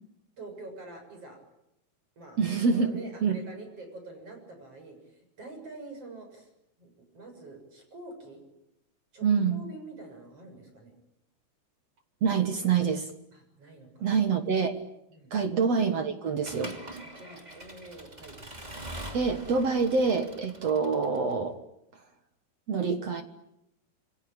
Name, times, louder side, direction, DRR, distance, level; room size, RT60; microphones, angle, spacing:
voice 1, 0.4-1.4 2.2-6.5 6.8-8.4 9.1-10.9 13.3-14.1 15.1-15.4 17.0-18.4, right 2 dB, 35° right, 5 dB, 7.9 m, -46 dB
voice 2, 2.4-2.9 3.2-3.4 9.2-9.6 12.2-13.1 14.0-14.7 15.3-16.8 19.1-21.6 22.7-23.2, right 5 dB, 55° right, 8 dB, 2.1 m, -26 dB
Accelerating revving vroom / Mechanisms, 16.4-21.3, right 1 dB, 10° right, 2.3 m, -43 dB
28.0 x 24.0 x 8.9 m, 0.82 s
omnidirectional pair, 4.6 m